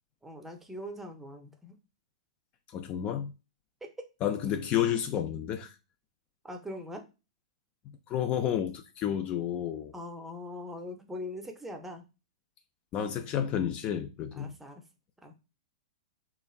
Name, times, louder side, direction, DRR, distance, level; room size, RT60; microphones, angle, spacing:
voice 1, 0.2-1.7 3.8-4.1 6.4-7.0 9.9-12.0 14.3-14.8 15.2-15.3, left 1 dB, 5° right, 0.6 m, -41 dB
voice 2, 2.7-3.3 4.2-5.7 8.1-9.9 12.9-14.5, left 10 dB, 30° left, 0.3 m, -30 dB
3.0 x 2.4 x 2.3 m
hypercardioid pair, 110°, 4 cm